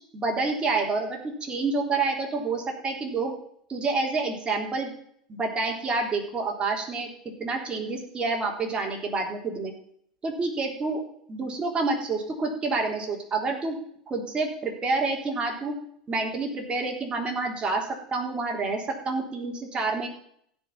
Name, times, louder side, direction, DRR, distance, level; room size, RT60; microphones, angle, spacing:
voice 1, 0.1-3.3 3.7-4.9 5.3-7.1 7.4-9.7 10.2-11.0 11.3-13.8 14.1-15.8 16.1-20.1, right 3 dB, 25° right, 1 dB, 3.7 m, -28 dB
16.5 x 5.5 x 5.9 m, 0.66 s
hypercardioid pair, 90°, 4 cm